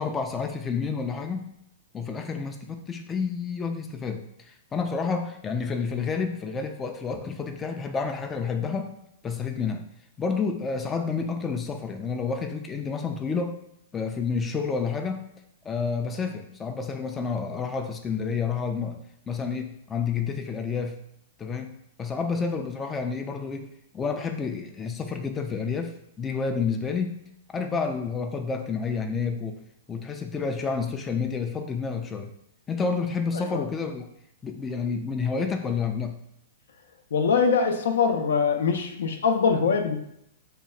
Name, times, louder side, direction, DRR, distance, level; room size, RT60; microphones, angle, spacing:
voice 1, 0.0-1.5 1.9-8.9 9.2-9.8 10.2-13.6 13.9-15.2 15.6-19.0 19.3-21.0 21.4-21.7 22.0-27.2 27.5-29.6 29.9-32.3 32.7-34.1 34.4-36.2, left 5 dB, 15° left, 5 dB, 0.3 m, -29 dB
voice 2, 37.1-40.0, left 5 dB, 80° left, 6 dB, 0.5 m, -23 dB
2.8 x 2.3 x 4.2 m, 0.76 s
hypercardioid pair, 140°, 0 cm